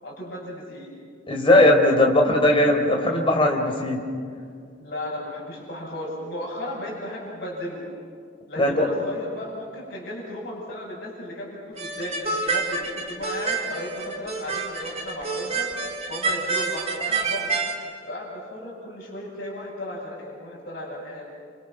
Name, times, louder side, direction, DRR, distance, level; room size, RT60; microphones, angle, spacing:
voice 1, 0.0-0.9 2.0-2.4 4.8-7.8 8.5-15.7 16.1-17.5 18.1-21.3, left 1 dB, 55° left, -7 dB, 7.8 m, -35 dB
voice 2, 1.3-4.0 8.6-8.9, left 1 dB, 30° left, 1 dB, 4.3 m, -18 dB
sound 1, 11.8-17.7, right 4 dB, 35° right, 2.8 m, -28 dB
30.0 x 29.0 x 6.3 m, 2.2 s
head